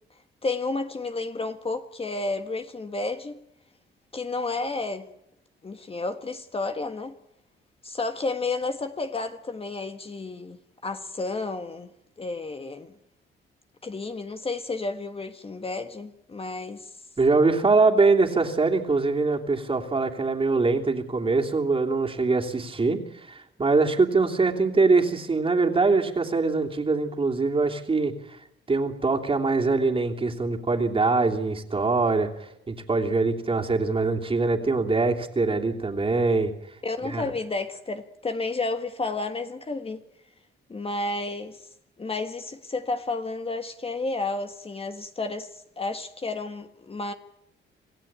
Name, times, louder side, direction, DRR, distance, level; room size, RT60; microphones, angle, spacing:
voice 1, 0.4-3.4 4.1-5.1 5.6-7.1 7.8-11.9 12.2-12.9 13.8-16.9 36.8-40.0 40.7-41.6 42.0-47.1, left 3 dB, 30° left, 1.6 m, -31 dB
voice 2, 17.2-28.4 28.7-36.5 37.0-37.2, right 3 dB, 25° right, 3.1 m, -23 dB
27.5 x 15.5 x 8.9 m
cardioid pair, 90°, 20 cm